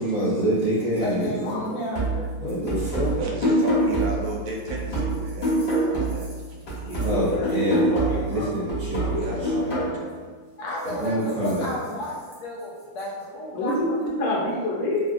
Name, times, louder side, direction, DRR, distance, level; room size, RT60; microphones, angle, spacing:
voice 1, 0.0-1.7 2.4-3.2 6.8-9.8 10.8-11.7, right 1 dB, 50° right, -11 dB, 1.5 m, -26 dB
voice 2, 1.0-2.1 10.6-13.7 14.3-14.4, left 1 dB, 85° left, -3 dB, 1.5 m, -32 dB
voice 3, 1.9-2.2 6.8-8.6 8.9-9.3 13.5-15.0, left 1 dB, 60° left, -6 dB, 1.2 m, -29 dB
sound 1, 1.9-6.4 6.7-9.9, right 1 dB, 35° left, 0.9 m, -25 dB
voice 4, 2.8-6.4 9.1-10.3, right 2 dB, 75° right, -2 dB, 1.4 m, -35 dB
3.5 x 2.1 x 2.5 m, 1.5 s
omnidirectional pair, 2.3 m